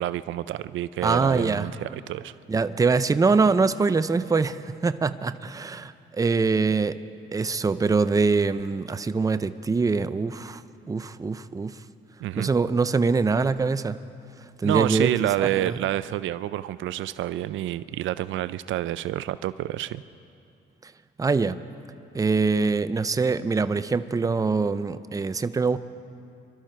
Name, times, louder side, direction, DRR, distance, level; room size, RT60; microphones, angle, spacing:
voice 1, 0.0-2.3 12.2-12.5 14.6-20.0, right 13 dB, 75° right, 15 dB, 0.4 m, -28 dB
voice 2, 1.0-1.7 2.5-7.0 7.3-10.6 10.9-11.8 12.4-14.0 14.6-15.8 20.8-20.9 21.2-21.6 22.1-25.8, right 4 dB, 15° right, 13 dB, 0.5 m, -24 dB
25.5 x 12.5 x 4.5 m, 2.5 s
cardioid pair, 90°, 20 cm